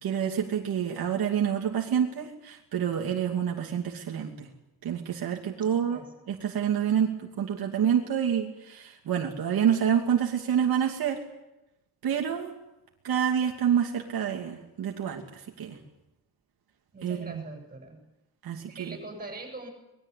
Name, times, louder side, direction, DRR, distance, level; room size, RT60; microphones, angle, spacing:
voice 1, 0.0-4.5 4.8-6.0 6.3-11.2 12.0-12.5 13.0-15.8 17.0-17.4 18.4-19.0, right 8 dB, 70° right, 0 dB, 2.8 m, -28 dB
voice 2, 5.4-6.1 16.9-18.0 18.6-19.7, right 2 dB, 25° right, 3 dB, 7.8 m, -43 dB
25.5 x 21.5 x 8.5 m, 0.95 s
wide cardioid pair, 160°, 38 cm